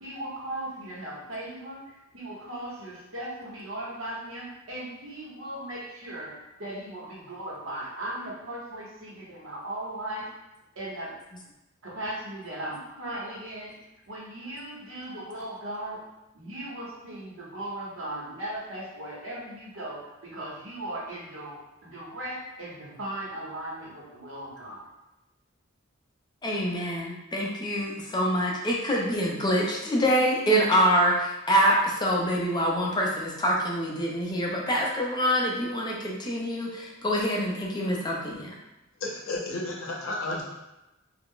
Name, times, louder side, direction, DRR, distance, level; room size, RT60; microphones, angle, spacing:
voice 1, 0.0-10.3 10.7-11.1 11.8-13.7 14.1-16.0 16.3-24.9, right 1 dB, 70° right, -6 dB, 1.0 m, -37 dB
voice 2, 26.4-38.5, equal, 20° left, -2 dB, 0.4 m, -25 dB
voice 3, 39.0-40.4, left 2 dB, 75° left, -2 dB, 0.7 m, -32 dB
2.3 x 2.1 x 3.6 m, 0.96 s
head